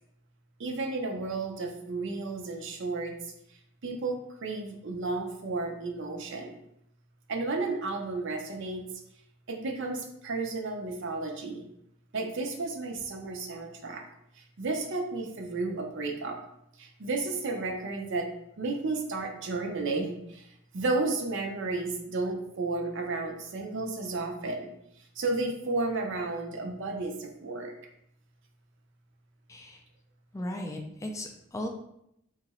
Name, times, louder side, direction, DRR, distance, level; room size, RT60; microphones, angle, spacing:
voice 1, 0.6-3.3 3.8-6.6 7.3-8.8 9.5-11.7 12.1-14.0 14.3-16.4 16.8-18.3 18.6-24.7 25.0-27.7, right 3 dB, 65° right, 2 dB, 0.6 m, -33 dB
voice 2, 29.5-29.8 30.3-31.7, left 1 dB, 15° left, 3 dB, 0.3 m, -36 dB
2.8 x 2.5 x 4.1 m, 0.76 s
head